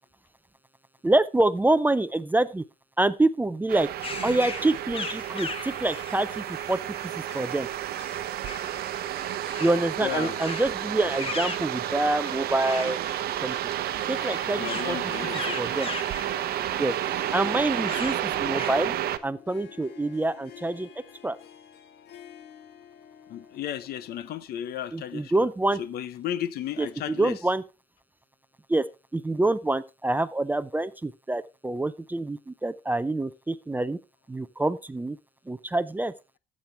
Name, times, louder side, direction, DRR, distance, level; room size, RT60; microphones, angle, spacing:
voice 1, 1.0-2.6 3.0-3.9 4.2-6.8 7.3-7.7 9.6-13.0 13.4-13.6 14.1-15.1 15.6-15.9 16.8-17.0 17.3-18.9 19.2-20.9 21.2-21.4 24.9-25.8 26.8-27.6 28.7-28.9 29.1-34.0 34.3-35.2 35.5-36.1, right 2 dB, 10° right, 0.4 m, -26 dB
sound 1, 3.7-19.2, right 12 dB, 65° right, 0.7 m, -31 dB
sound 2, 4.0-18.7, left 4 dB, 35° left, 1.3 m, -40 dB
voice 2, 10.0-10.4 14.6-15.6 16.3-16.8 18.4-18.5 23.3-25.3 25.8-27.4, left 11 dB, 65° left, 0.7 m, -34 dB
Harp, 14.0-24.3, left 8 dB, 85° left, 1.4 m, -48 dB
13.0 x 7.4 x 3.3 m
cardioid pair, 110°, 17 cm